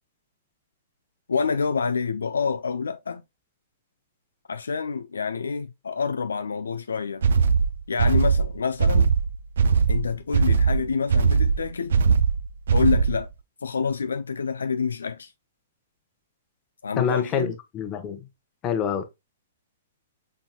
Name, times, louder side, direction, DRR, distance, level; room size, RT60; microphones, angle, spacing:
voice 1, 1.3-3.2 4.5-7.2 7.9-9.1 9.9-12.0 12.7-13.3 13.6-15.3 16.8-17.5, left 5 dB, 80° left, 0.3 m, -27 dB
sound 1, 7.2-13.3, right 5 dB, 70° right, 0.4 m, -20 dB
voice 2, 17.0-18.2 18.6-19.0, left 7 dB, 30° left, 0.9 m, -26 dB
4.1 x 3.7 x 2.2 m
hypercardioid pair, 120°, 0 cm